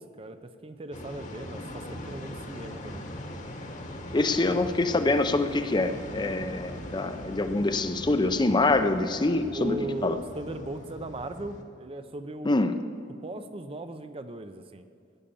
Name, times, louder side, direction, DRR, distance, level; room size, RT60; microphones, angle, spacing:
voice 1, 0.0-3.1 9.5-12.6 13.2-14.9, right 2 dB, 30° right, 10 dB, 0.6 m, -38 dB
sound 1, 0.9-11.6, left 1 dB, 40° left, 1.3 m, -40 dB
voice 2, 4.1-9.8 10.0-10.2 12.4-12.7, left 2 dB, 25° left, 9 dB, 0.6 m, -25 dB
15.5 x 10.0 x 7.0 m, 2.3 s
head